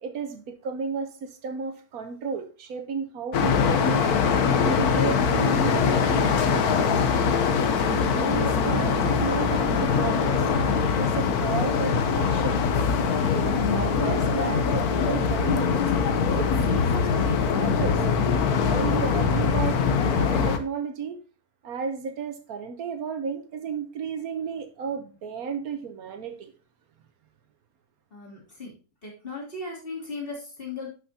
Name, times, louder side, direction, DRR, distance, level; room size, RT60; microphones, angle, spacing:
voice 1, 0.0-4.1 4.5-7.0 7.8-10.5 10.8-12.6 13.3-15.9 16.4-18.0 18.6-21.2 21.6-26.5, right 5 dB, 75° right, 7 dB, 1.4 m, -33 dB
sound 1, 3.3-20.6, left 6 dB, 90° left, 1.4 m, -23 dB
voice 2, 28.1-28.7 29.0-30.9, left 3 dB, 35° left, -4 dB, 3.2 m, -37 dB
11.0 x 6.0 x 2.8 m, 0.37 s
omnidirectional pair, 1.6 m